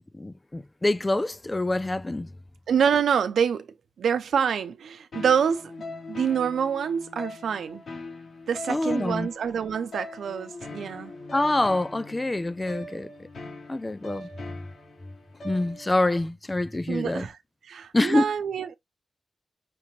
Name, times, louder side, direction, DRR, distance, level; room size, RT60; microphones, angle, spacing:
voice 1, 0.0-2.3 8.7-9.3 11.3-13.1 13.7-14.3 15.4-17.3 17.9-18.3, left 2 dB, 20° left, 0.4 m, -26 dB
voice 2, 2.7-3.7 4.0-5.7 6.1-7.8 8.5-11.1 16.9-17.4 17.7-18.7, right 7 dB, 90° right, 0.7 m, -26 dB
sound 1, 5.1-16.1, left 2 dB, 65° left, 3.1 m, -41 dB
6.1 x 2.8 x 3.0 m
wide cardioid pair, 90°, 0 cm